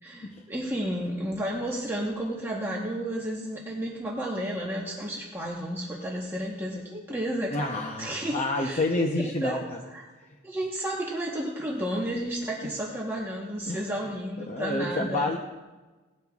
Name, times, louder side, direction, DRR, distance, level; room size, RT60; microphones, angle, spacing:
voice 1, 0.0-7.7 8.0-10.0 10.4-15.3, right 1 dB, 10° right, -4 dB, 1.1 m, -32 dB
voice 2, 7.5-9.8 13.7-13.8 14.5-15.4, left 2 dB, 35° left, 1 dB, 0.8 m, -28 dB
18.5 x 12.0 x 2.4 m, 1.2 s
head